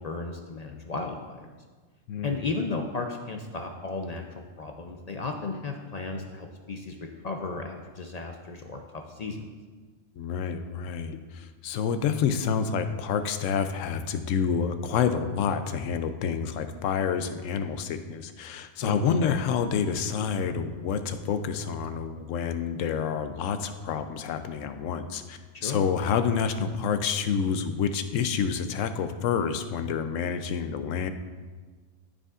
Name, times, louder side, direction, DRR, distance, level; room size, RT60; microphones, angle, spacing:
voice 1, 0.0-1.5 2.2-4.2 4.6-9.5 18.8-19.3 25.5-25.8, left 3 dB, 50° left, 3 dB, 0.4 m, -34 dB
voice 2, 2.1-2.5 10.2-31.1, left 7 dB, 85° left, 9 dB, 0.9 m, -28 dB
12.5 x 5.1 x 2.4 m, 1.4 s
omnidirectional pair, 1.3 m